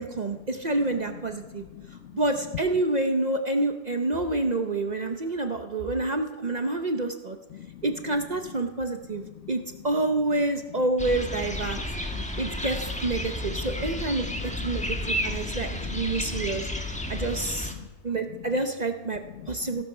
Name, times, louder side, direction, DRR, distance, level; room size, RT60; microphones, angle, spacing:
voice 1, 0.0-1.6 2.1-7.4 7.8-11.8 12.4-12.8 13.0-14.3 14.6-16.7 17.1-17.7 18.0-19.2 19.5-19.8, right 2 dB, 45° right, 6 dB, 0.6 m, -28 dB
voice 2, 1.7-2.1 7.5-7.8 9.3-9.5 11.7-12.4 14.2-14.3 14.7-17.9 18.3-18.5 19.3-19.5, left 11 dB, 70° left, 14 dB, 0.6 m, -44 dB
sound 1, 11.0-17.7, left 1 dB, 5° left, 1.1 m, -32 dB
16.0 x 13.5 x 5.5 m, 1.1 s
omnidirectional pair, 1.8 m